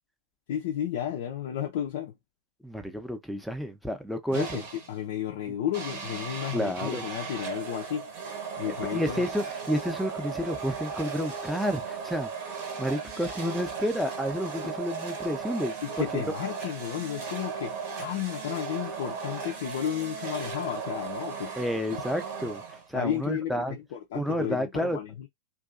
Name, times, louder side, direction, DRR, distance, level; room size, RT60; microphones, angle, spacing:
voice 1, 0.5-2.1 4.3-4.6 4.9-9.2 15.8-21.5 22.9-25.3, left 10 dB, 55° left, 0.4 m, -33 dB
voice 2, 2.6-4.6 6.5-7.0 8.7-12.3 12.8-16.2 21.6-22.6 22.9-23.8 24.1-25.0, equal, ahead, 0.6 m, -30 dB
sound 1, 4.3-5.0 5.7-23.1, right 5 dB, 50° right, 0.9 m, -37 dB
2.6 x 2.3 x 2.5 m
figure-of-eight pair, 90°, 0 cm